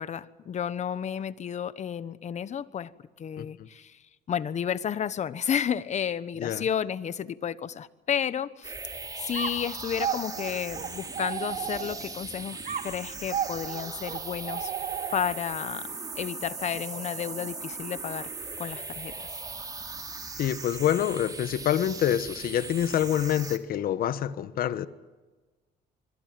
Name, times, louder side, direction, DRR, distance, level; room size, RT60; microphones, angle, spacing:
voice 1, 0.0-2.9 3.2-4.0 4.3-8.7 9.2-14.7 15.1-18.3 18.6-19.4, left 8 dB, 45° left, 1.2 m, -32 dB
voice 2, 3.4-3.7 6.4-6.6 20.4-24.9, left 10 dB, 60° left, 1.3 m, -27 dB
sound 1, 8.6-23.6, right 3 dB, 20° right, 2.8 m, -39 dB
sound 2, 9.3-12.2 12.7-15.5, right 8 dB, 50° right, 2.4 m, -34 dB
25.5 x 22.5 x 7.8 m
cardioid pair, 110°, 17 cm